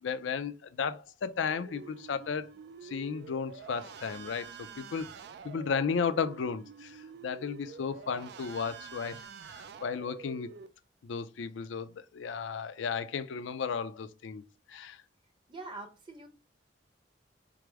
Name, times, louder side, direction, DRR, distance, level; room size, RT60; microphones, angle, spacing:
voice 1, 0.0-2.5 2.8-5.1 5.4-10.5 11.0-14.4 14.7-15.0, left 6 dB, 75° left, 0.4 m, -34 dB
sound 1, 1.5-10.7, right 6 dB, 60° right, 0.3 m, -48 dB
voice 2, 15.5-16.3, right 3 dB, 25° right, 0.8 m, -44 dB
4.8 x 2.0 x 4.5 m
head